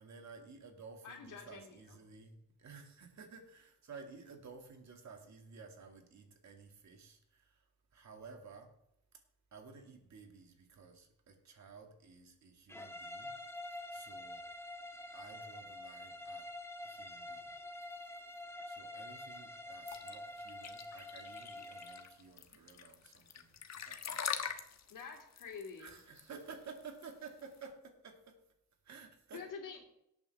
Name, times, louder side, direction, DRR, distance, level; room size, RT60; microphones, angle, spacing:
voice 1, 0.0-8.7 9.1-9.2 9.5-13.4 13.9-14.4 15.1-16.5 16.8-17.5 18.7-24.5 25.8-28.4 28.8-29.5, right 5 dB, 60° right, 4 dB, 2.3 m, -54 dB
voice 2, 1.0-2.0 24.9-25.9 29.3-30.0, left 5 dB, 80° left, 2 dB, 2.9 m, -48 dB
sound 1, 12.7-22.2, left 1 dB, 10° left, 0.9 m, -47 dB
sound 2, 19.9-27.6, left 7 dB, 55° left, 1.2 m, -43 dB
18.5 x 8.8 x 3.6 m, 0.77 s
cardioid pair, 105°, 31 cm